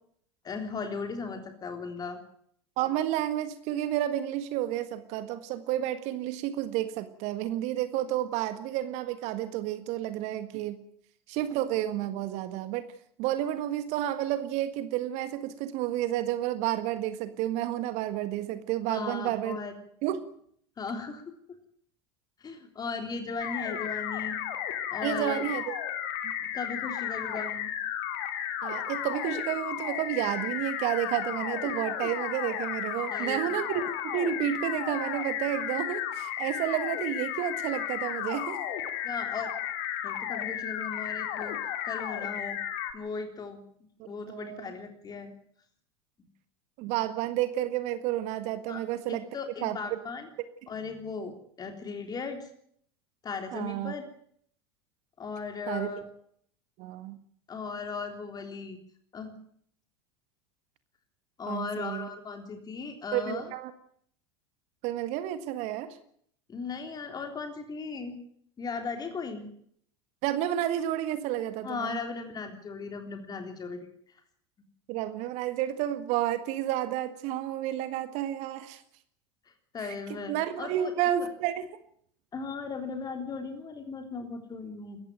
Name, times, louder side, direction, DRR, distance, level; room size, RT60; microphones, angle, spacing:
voice 1, 0.4-2.2 18.9-19.7 20.8-21.6 22.4-24.4 24.9-25.4 26.4-27.8 33.1-33.5 39.0-39.5 40.0-41.6 41.8-42.6 42.9-43.6 44.1-45.3 48.7-48.8 49.1-50.3 50.7-52.5 53.2-54.1 55.2-56.1 57.5-58.8 59.1-59.3 61.4-63.5 66.5-68.1 68.6-69.5 71.6-73.9 79.7-80.9 82.3-85.0, left 4 dB, 30° left, 6 dB, 3.5 m, -37 dB
voice 2, 2.8-10.8 11.3-12.9 13.2-19.6 20.0-20.3 25.0-25.8 26.2-26.3 28.6-38.6 44.0-44.7 46.8-49.2 49.6-49.8 53.5-53.9 55.7-55.9 56.8-57.2 61.5-62.1 63.1-63.7 64.8-66.0 70.2-72.0 74.9-78.8 80.3-81.7, right 12 dB, 55° right, 12 dB, 1.7 m, -31 dB
sound 1, 23.4-42.9, left 10 dB, 60° left, 2.8 m, -34 dB
20.5 x 15.0 x 9.0 m, 0.65 s
figure-of-eight pair, 75°, 14 cm